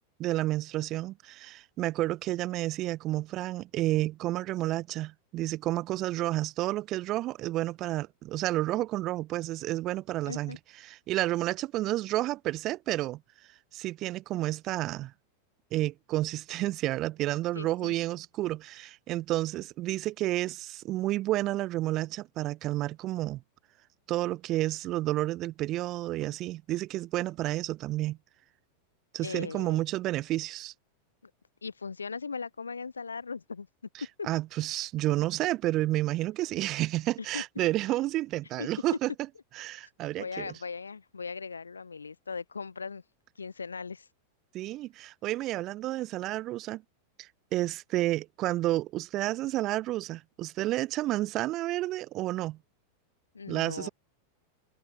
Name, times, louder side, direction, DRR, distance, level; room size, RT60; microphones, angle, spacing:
voice 1, 0.2-10.6 10.9-13.2 13.7-15.1 15.7-23.4 24.1-28.2 29.1-30.7 34.3-39.1 39.6-40.6 44.5-46.8 47.2-52.6 53.5-53.9, right 16 dB, 35° right, 1.8 m, -30 dB
voice 2, 10.2-10.6 17.5-17.9 29.2-29.8 31.6-33.7 34.2-34.3 37.3-37.4 38.6-38.7 39.8-39.9 40.2-43.0 43.3-44.1 53.3-53.9, left 5 dB, 75° left, 1.6 m, -38 dB
figure-of-eight pair, 90°, 0 cm